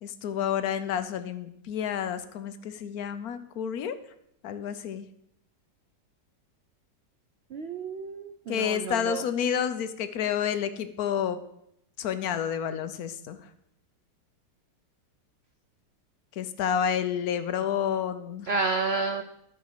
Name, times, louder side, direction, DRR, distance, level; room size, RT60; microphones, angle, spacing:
voice 1, 0.0-3.9 4.4-5.0 8.5-11.4 12.0-13.4 16.4-18.5, left 8 dB, 65° left, 11 dB, 1.2 m, -29 dB
voice 2, 7.5-9.2 18.5-19.2, right 4 dB, 85° right, 8 dB, 0.5 m, -30 dB
13.0 x 4.6 x 6.5 m, 0.75 s
omnidirectional pair, 1.9 m